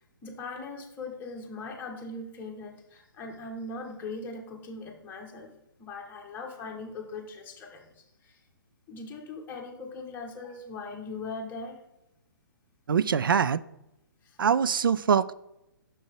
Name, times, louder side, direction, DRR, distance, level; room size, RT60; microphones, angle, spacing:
voice 1, 0.2-5.5 5.8-8.4 8.9-11.8 14.2-14.4, left 3 dB, 15° left, 1.5 m, -40 dB
voice 2, 12.9-13.6 14.4-15.3, right 7 dB, 70° right, 0.4 m, -23 dB
6.4 x 6.1 x 4.5 m
figure-of-eight pair, 130°, 12 cm